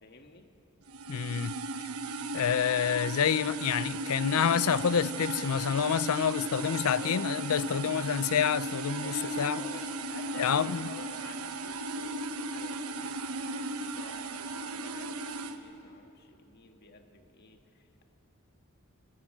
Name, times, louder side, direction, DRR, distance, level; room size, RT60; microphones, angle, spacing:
voice 1, 0.0-0.5 6.9-7.3 9.0-18.0, left 2 dB, 45° left, 1.6 m, -51 dB
sound 1, 0.9-15.6, right 2 dB, 85° right, 1.1 m, -36 dB
voice 2, 1.1-1.5 2.3-9.6 10.4-10.9, left 7 dB, 85° left, 0.5 m, -28 dB
20.5 x 19.5 x 8.7 m
head